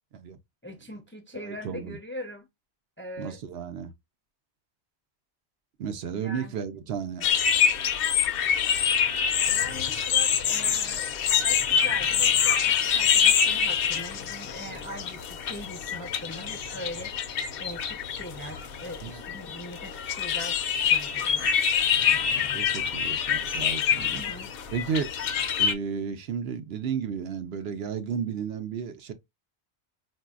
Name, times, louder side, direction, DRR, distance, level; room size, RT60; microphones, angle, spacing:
voice 1, 0.6-2.5 3.0-3.4 6.0-6.6 9.4-17.1 17.6-21.5 24.0-24.5, equal, 15° left, 0.4 m, -41 dB
voice 2, 1.3-2.0 3.2-3.9 5.8-7.3 19.0-19.2 21.4-21.6 22.1-24.2 24.7-25.1 25.6-29.1, right 7 dB, 70° right, 0.8 m, -33 dB
sound 1, 7.2-25.7, left 8 dB, 65° left, 0.7 m, -25 dB
4.0 x 2.6 x 2.3 m
omnidirectional pair, 1.1 m